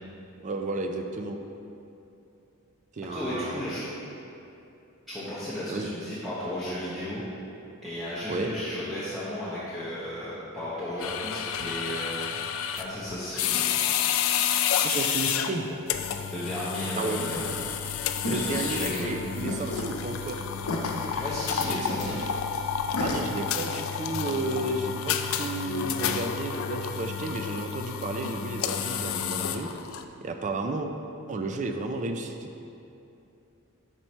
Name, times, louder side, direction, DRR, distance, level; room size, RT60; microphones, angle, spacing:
voice 1, 0.4-1.4 2.9-3.6 5.7-5.9 8.3-8.5 14.8-15.8 17.0-17.2 18.2-20.5 21.7-22.2 23.0-29.7 30.2-30.9 31.3-32.5, right 2 dB, 35° right, 5 dB, 0.4 m, -32 dB
voice 2, 3.1-3.9 5.1-7.2 7.8-12.4 12.8-13.7 16.3-17.6 18.3-19.1 21.2-22.2, left 1 dB, ahead, -13 dB, 0.8 m, -34 dB
sound 1, 11.0-30.0, left 8 dB, 65° left, 0.3 m, -30 dB
sound 2, 17.3-23.2, left 1 dB, 85° left, 0.7 m, -34 dB
4.5 x 4.4 x 5.3 m, 2.8 s
head